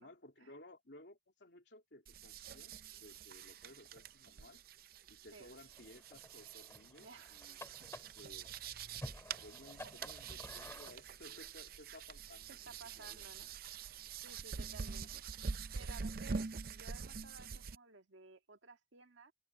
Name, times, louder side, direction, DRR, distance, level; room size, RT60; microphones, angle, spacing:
voice 1, 0.0-4.6 5.1-7.6 8.1-8.5 9.4-13.4 14.9-15.1, left 1 dB, 70° left, 3.2 m, -58 dB
sound 1, 2.1-17.8, right 5 dB, 50° right, 0.5 m, -46 dB
sound 2, 5.7-11.0, left 1 dB, 15° left, 2.7 m, -52 dB
voice 2, 7.0-7.4 9.8-9.9 12.5-13.5 14.2-15.3 15.7-19.3, right 4 dB, 90° right, 1.8 m, -57 dB
head